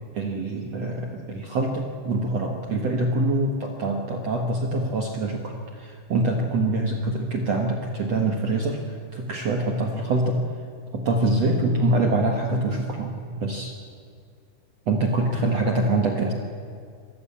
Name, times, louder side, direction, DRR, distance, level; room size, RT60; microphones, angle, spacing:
voice 1, 0.1-8.8 9.1-10.4 10.9-13.7 14.9-16.3, right 2 dB, 80° right, 2 dB, 1.4 m, -25 dB
24.5 x 14.5 x 8.6 m, 2.3 s
omnidirectional pair, 5.3 m